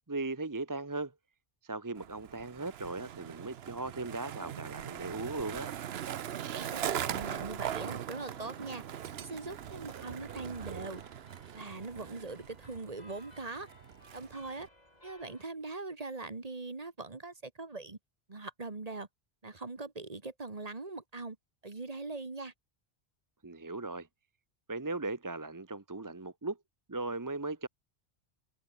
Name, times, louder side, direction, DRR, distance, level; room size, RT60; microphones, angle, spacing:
voice 1, 0.1-1.1 1.6-5.7 23.4-24.1 24.7-26.6 26.9-27.7, right 2 dB, 20° right, 0.7 m, -38 dB
Skateboard, 2.0-14.7, right 10 dB, 75° right, 1.0 m, -40 dB
voice 2, 6.6-8.8 9.2-11.0 11.5-13.7 14.1-14.7 15.0-18.0 18.3-19.1 19.4-21.4 21.6-22.5, right 3 dB, 40° right, 1.7 m, -41 dB
sound 1, 7.2-15.4, left 1 dB, 40° left, 6.2 m, -59 dB
omnidirectional pair, 1.1 m